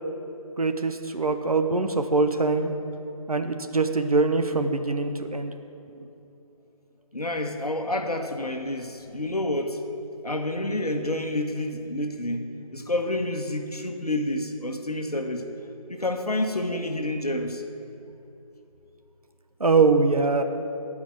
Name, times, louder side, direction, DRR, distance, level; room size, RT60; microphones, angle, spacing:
voice 1, 0.6-2.7 3.3-5.5 19.6-20.4, right 4 dB, 70° right, 6 dB, 1.0 m, -23 dB
voice 2, 7.1-9.9 10.2-15.5 15.9-17.6, left 1 dB, 90° left, 4 dB, 1.2 m, -29 dB
14.0 x 5.2 x 8.7 m, 2.9 s
figure-of-eight pair, 160°, 19 cm